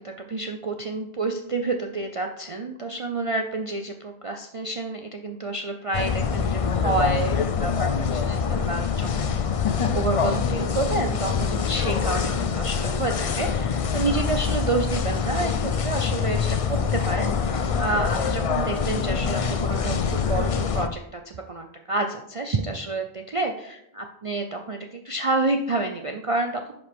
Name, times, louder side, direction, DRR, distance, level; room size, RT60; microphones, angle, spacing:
voice 1, 0.0-9.3 9.6-26.7, right 3 dB, 40° right, 4 dB, 0.5 m, -29 dB
sound 1, 5.9-20.9, left 6 dB, 50° left, 0.4 m, -25 dB
10.5 x 5.2 x 3.5 m, 0.78 s
omnidirectional pair, 1.2 m